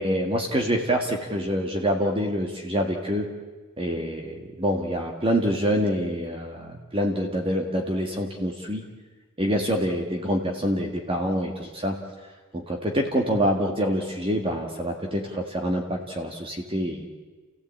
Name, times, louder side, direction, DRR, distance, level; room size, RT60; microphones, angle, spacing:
voice 1, 0.0-3.3 3.8-8.8 9.4-12.0 12.5-17.1, equal, 25° right, 2 dB, 1.8 m, -26 dB
29.5 x 16.0 x 8.6 m, 1.3 s
head